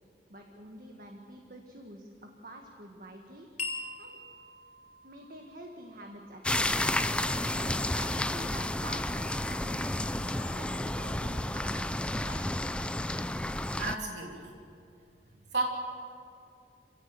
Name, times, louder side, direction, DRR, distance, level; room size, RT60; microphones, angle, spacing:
voice 1, 0.3-4.2 5.0-6.7 7.5-12.5 15.3-15.4, right 1 dB, 50° right, 2 dB, 1.8 m, -48 dB
sound 1, 3.6-8.2, left 3 dB, 40° left, 3.0 m, -44 dB
sound 2, 6.4-14.0, left 1 dB, 5° left, 0.5 m, -31 dB
voice 2, 13.8-14.5 15.5-15.6, right 3 dB, 90° right, 0 dB, 3.0 m, -32 dB
27.0 x 17.0 x 7.9 m, 2.4 s
head